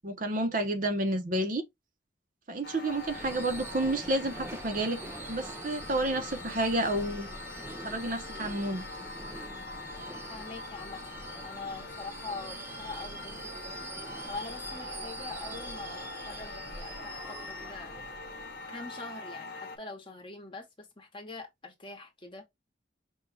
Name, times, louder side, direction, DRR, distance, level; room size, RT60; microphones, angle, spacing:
voice 1, 0.0-1.6 2.5-5.0 5.3-7.3 7.8-8.8, right 1 dB, 45° right, 0.8 m, -30 dB
sound 1, 2.6-19.8, left 3 dB, 55° left, 0.9 m, -44 dB
Subway metro underground / Screech, 2.9-18.8, right 2 dB, 10° right, 0.4 m, -44 dB
voice 2, 10.3-11.1 11.4-13.9 14.3-18.0 18.7-22.5, left 3 dB, 25° left, 1.0 m, -44 dB
5.4 x 2.3 x 3.3 m
head